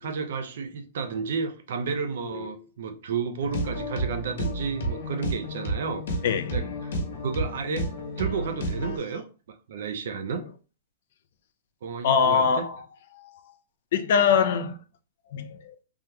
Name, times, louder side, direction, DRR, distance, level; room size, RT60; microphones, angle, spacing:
voice 1, 0.0-6.2 6.5-6.9 7.2-7.9 8.2-9.3 9.7-10.4 11.8-12.7, right 5 dB, 60° right, 0.5 m, -32 dB
sound 1, 3.4-9.0, equal, 75° left, 1.0 m, -31 dB
voice 2, 6.2-6.6 7.1-7.2 12.0-12.8 13.1-13.3 13.9-14.8 15.3-15.7, left 6 dB, 50° left, 0.4 m, -23 dB
3.4 x 2.8 x 2.2 m
hypercardioid pair, 170°, 0 cm